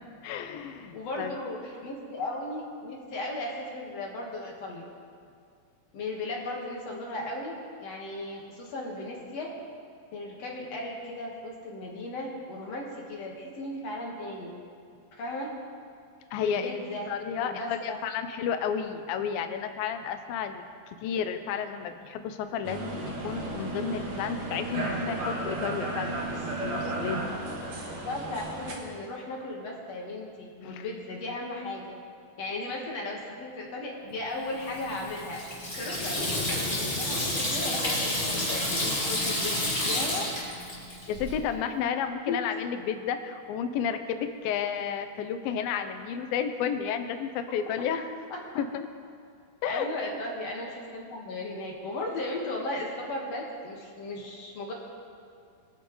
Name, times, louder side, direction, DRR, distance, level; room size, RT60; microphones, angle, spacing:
voice 1, 0.2-1.4 16.3-16.8 17.1-20.6 21.0-27.3 30.6-30.9 41.1-48.1 48.6-48.9 49.6-49.9, left 7 dB, 80° left, 8 dB, 2.4 m, -32 dB
voice 2, 0.9-4.9 5.9-9.5 10.1-14.6 15.1-15.5 16.4-17.1 17.4-18.0 27.8-31.9 32.4-35.4 35.8-40.3 42.3-42.4 48.3-48.4 49.6-54.7, left 2 dB, 55° left, -2 dB, 2.1 m, -36 dB
sound 1, 22.6-28.7, right 2 dB, 55° right, 2.6 m, -34 dB
Water tap faucet / Sink (filling or washing), 34.6-41.3, left 1 dB, 15° left, 1.8 m, -30 dB
22.0 x 9.3 x 3.1 m, 2.3 s
omnidirectional pair, 4.4 m